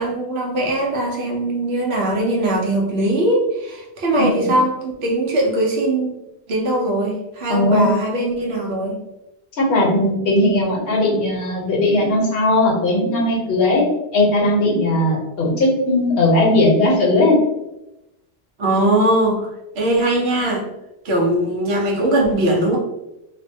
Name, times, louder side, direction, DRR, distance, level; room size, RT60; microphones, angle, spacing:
voice 1, 0.0-6.2 6.5-9.0 14.9-15.0 18.6-19.5 19.7-20.7 21.0-22.8, right 1 dB, 70° right, -1 dB, 0.9 m, -20 dB
voice 2, 4.1-4.5 7.5-7.9 9.6-13.8 14.1-17.4, left 1 dB, 60° left, -2 dB, 0.9 m, -17 dB
2.5 x 2.1 x 2.6 m, 0.93 s
omnidirectional pair, 1.1 m